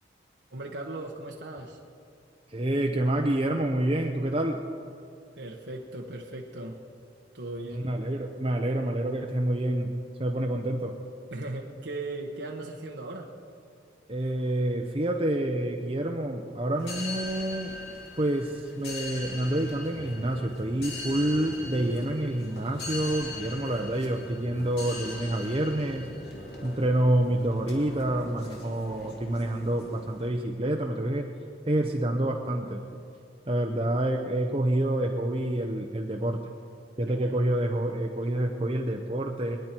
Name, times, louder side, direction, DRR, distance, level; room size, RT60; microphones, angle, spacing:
voice 1, 0.5-1.8 5.3-6.8 7.3-7.9 11.3-13.3 33.8-33.9 37.1-37.4, right 2 dB, 75° right, -1 dB, 1.2 m, -38 dB
voice 2, 2.5-4.6 7.7-9.9 10.2-10.9 14.1-17.7 18.1-26.1 26.6-31.3 31.7-32.8 33.5-36.4 37.0-39.6, right 1 dB, 30° right, 2 dB, 0.7 m, -28 dB
sound 1, 16.8-30.3, left 2 dB, 60° left, 2.2 m, -41 dB
23.0 x 10.5 x 4.5 m, 2.4 s
head